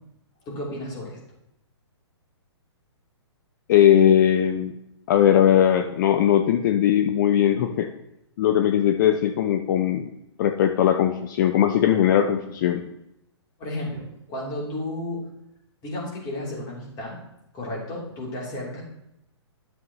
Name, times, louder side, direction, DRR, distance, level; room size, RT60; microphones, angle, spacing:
voice 1, 0.4-1.2 13.6-15.2 15.8-17.2 17.5-18.8, left 1 dB, 25° left, -4 dB, 3.3 m, -33 dB
voice 2, 3.7-4.8 5.1-7.9 8.4-10.1 10.4-12.8, left 10 dB, 45° left, 7 dB, 0.6 m, -19 dB
11.0 x 7.1 x 3.1 m, 0.83 s
figure-of-eight pair, 125°, 15 cm